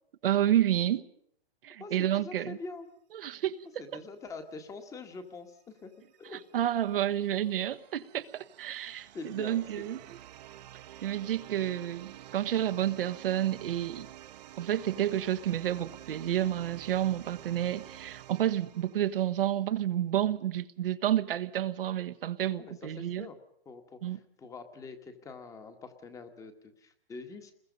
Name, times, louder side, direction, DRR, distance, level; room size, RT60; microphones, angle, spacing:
voice 1, 0.2-1.1 1.6-2.6 3.1-3.8 6.2-10.0 11.0-14.1 14.6-23.3 24.0-24.2, right 11 dB, 65° right, 1.4 m, -30 dB
voice 2, 1.8-2.9 3.8-5.9 6.2-6.4 9.1-10.0 22.6-23.4 23.6-27.5, left 3 dB, 10° left, 1.7 m, -45 dB
sound 1, 5.8-19.6, right 13 dB, 45° right, 1.3 m, -50 dB
29.0 x 21.5 x 5.4 m
hypercardioid pair, 160°, 31 cm